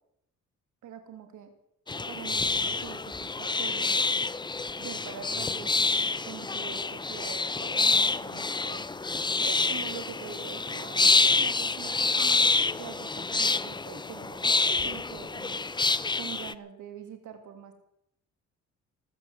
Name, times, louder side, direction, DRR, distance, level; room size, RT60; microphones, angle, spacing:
voice 1, 0.8-1.5 2.1-4.0 4.8-8.8 9.4-15.6 16.1-17.7, right 8 dB, 75° right, 6 dB, 2.7 m, -44 dB
sound 1, 1.9-16.5, left 3 dB, 15° left, 0.6 m, -27 dB
19.0 x 8.9 x 7.7 m, 0.75 s
cardioid pair, 90°, 30 cm